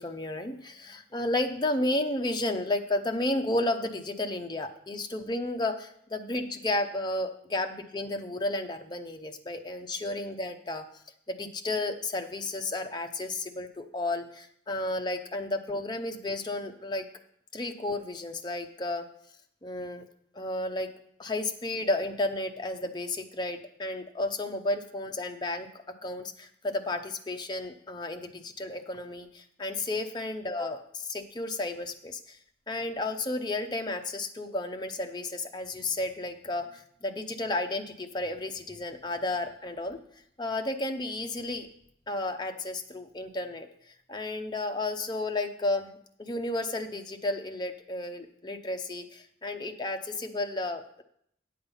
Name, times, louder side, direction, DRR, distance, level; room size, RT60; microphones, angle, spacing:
voice 1, 0.0-10.8 11.3-17.0 17.5-19.0 19.6-20.0 20.3-20.9 21.2-25.7 26.0-32.4 32.7-40.0 40.4-41.7 42.1-45.9 46.2-51.0, left 2 dB, 20° left, 4 dB, 0.7 m, -32 dB
8.6 x 7.9 x 5.5 m, 0.70 s
head